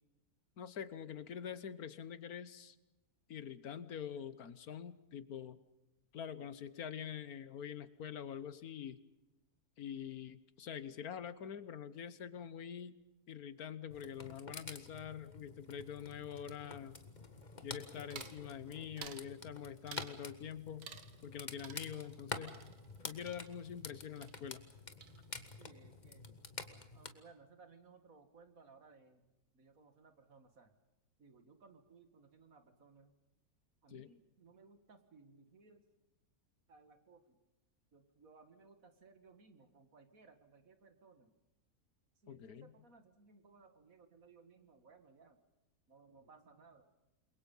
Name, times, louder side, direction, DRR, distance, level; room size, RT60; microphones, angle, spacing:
voice 1, 0.6-2.8 3.3-5.6 6.1-9.0 9.8-12.9 13.3-17.0 17.6-20.9 21.2-22.6 23.0-24.6 33.9-34.1 42.3-42.7, left 8 dB, 75° left, 14 dB, 1.5 m, -45 dB
sound 1, 13.9-27.1, left 3 dB, 30° left, 1.6 m, -49 dB
sound 2, 18.1-18.4 19.0-19.3 19.9-20.2 20.8-21.3 21.6-23.9 24.2-24.7 25.0-25.6, right 7 dB, 80° right, 1.8 m, -53 dB
voice 2, 25.6-26.3 26.9-30.7 31.2-33.2 33.8-35.8 36.7-37.4 37.9-41.3 42.2-45.4 45.9-46.9, right 4 dB, 65° right, 8 dB, 2.4 m, -62 dB
28.5 x 22.5 x 5.5 m, 0.96 s
omnidirectional pair, 1.6 m